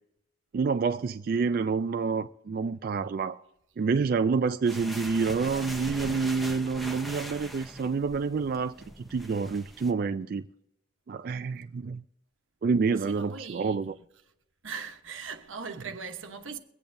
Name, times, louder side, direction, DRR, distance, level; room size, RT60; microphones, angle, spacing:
voice 1, 0.5-3.4 3.8-10.4 11.1-12.0 12.6-13.9, right 5 dB, 50° right, 0.3 m, -28 dB
sound 1, 4.6-9.9, equal, ahead, 0.7 m, -41 dB
voice 2, 13.0-14.0 14.6-16.6, right 5 dB, 85° right, 1.1 m, -40 dB
23.5 x 8.6 x 2.7 m
head